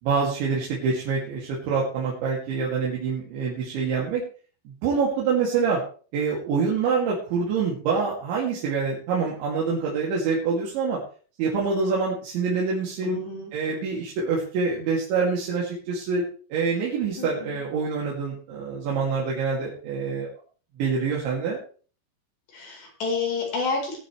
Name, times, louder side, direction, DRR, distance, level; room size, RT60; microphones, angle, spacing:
voice 1, 0.0-4.2 4.7-5.8 6.1-11.0 11.4-13.2 13.5-16.2 16.5-20.3 20.8-21.6, right 5 dB, 90° right, -5 dB, 5.1 m, -26 dB
voice 2, 13.0-13.5 17.2-17.5 22.5-24.0, left 4 dB, 70° left, -1 dB, 6.8 m, -29 dB
21.5 x 8.7 x 3.4 m, 0.40 s
omnidirectional pair, 5.1 m